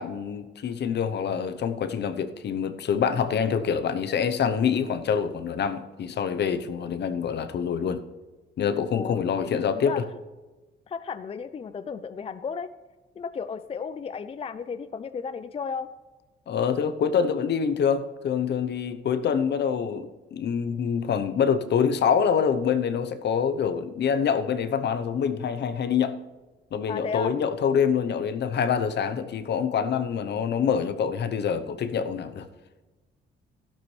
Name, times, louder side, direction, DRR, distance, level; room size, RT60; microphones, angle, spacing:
voice 1, 0.0-8.0 8.6-10.0 16.5-26.1 26.7-32.5, left 7 dB, 60° left, 11 dB, 0.9 m, -26 dB
voice 2, 8.9-10.0 10.9-12.7 13.2-15.9 26.9-27.4, left 6 dB, 30° left, 12 dB, 0.4 m, -34 dB
12.5 x 11.5 x 3.3 m, 1.2 s
cardioid pair, 90°, 20 cm